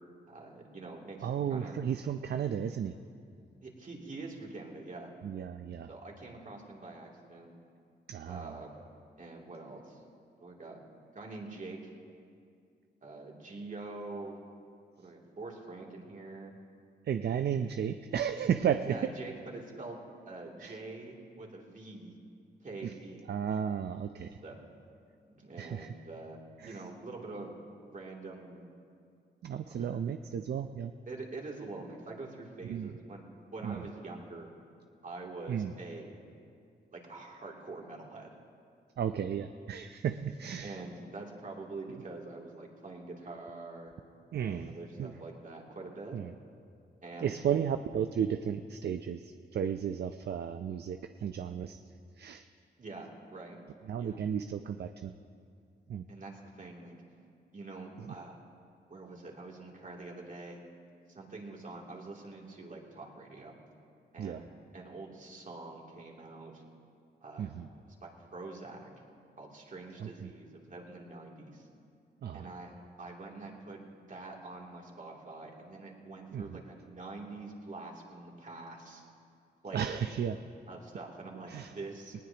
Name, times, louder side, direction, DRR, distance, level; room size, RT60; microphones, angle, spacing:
voice 1, 0.3-1.8 3.6-5.1 5.9-7.5 8.2-8.8 9.2-10.0 10.4-10.8 11.1-11.9 13.0-14.4 15.0-16.5 18.8-20.0 20.3-22.2 22.6-23.3 24.4-24.6 25.2-26.4 26.7-27.6 27.9-28.6 29.7-30.0 31.1-33.3 33.5-34.5 35.0-36.2 36.9-38.3 40.6-43.9 44.4-46.2 47.0-47.4 52.8-53.6 54.0-54.2 56.1-57.0 57.5-58.4 58.9-60.6 61.1-63.5 64.1-64.5 64.7-66.6 67.2-67.5 67.7-68.9 69.4-71.7 72.3-73.8 74.1-79.0 79.6-80.0 80.7-82.2, right 3 dB, 45° right, -2 dB, 2.9 m, -45 dB
voice 2, 1.2-2.9 5.2-5.9 8.1-8.5 17.1-19.1 20.6-20.8 22.8-22.9 23.3-24.4 25.6-25.9 26.6-26.8 29.4-30.9 32.7-32.9 33.6-33.8 35.5-35.7 39.0-40.8 44.3-45.1 46.1-46.3 47.2-51.8 52.2-52.4 53.9-55.1 55.9-56.0 58.1-58.2 64.2-64.4 67.4-67.7 70.0-70.3 72.2-72.5 76.3-76.6 79.7-80.4 81.5-81.7, right 8 dB, 65° right, 8 dB, 0.6 m, -34 dB
19.5 x 19.0 x 3.0 m, 2.3 s
cardioid pair, 70°, 18 cm